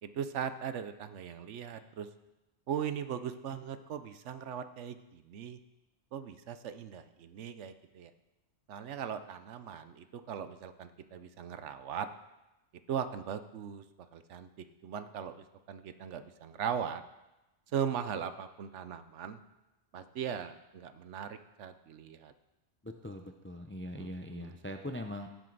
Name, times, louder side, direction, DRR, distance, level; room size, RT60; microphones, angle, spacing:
voice 1, 0.0-2.1 2.7-5.6 6.1-8.1 8.7-12.1 12.9-13.8 14.1-17.0 17.7-19.4 19.9-22.3 23.9-24.6, right 8 dB, 75° right, 11 dB, 1.0 m, -39 dB
voice 2, 22.8-25.3, left 1 dB, 15° left, 6 dB, 0.4 m, -41 dB
16.5 x 7.6 x 4.0 m, 0.99 s
omnidirectional pair, 1.3 m